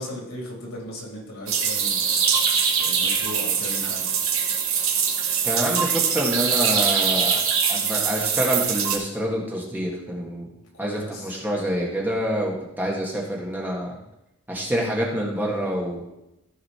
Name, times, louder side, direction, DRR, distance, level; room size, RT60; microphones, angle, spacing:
voice 1, 0.0-4.1 10.7-11.3, left 1 dB, 85° left, -2 dB, 3.6 m, -37 dB
sound 1, 1.5-9.0, right 6 dB, 65° right, 1.7 m, -23 dB
voice 2, 5.4-7.4 7.7-10.5 10.8-13.9 14.5-16.1, equal, 10° right, -2 dB, 1.7 m, -27 dB
14.5 x 5.6 x 4.3 m, 0.90 s
head